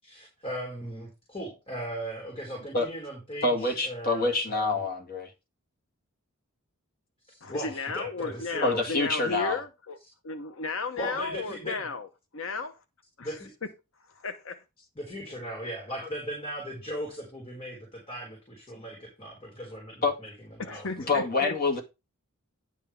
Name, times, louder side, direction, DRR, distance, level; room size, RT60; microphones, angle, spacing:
voice 1, 0.0-4.8 7.3-8.9 11.0-11.9 13.2-13.5 15.0-20.3 20.6-21.3, right 1 dB, 25° left, 3.9 m, -38 dB
voice 2, 3.4-5.3 8.6-9.6 20.0-20.2 21.1-21.8, left 3 dB, 40° left, 2.0 m, -26 dB
voice 3, 7.4-10.0 10.2-12.1 12.3-12.7 13.2-13.4 14.0-14.6 20.6-21.6, left 4 dB, 60° left, 0.9 m, -34 dB
10.5 x 3.7 x 7.0 m
head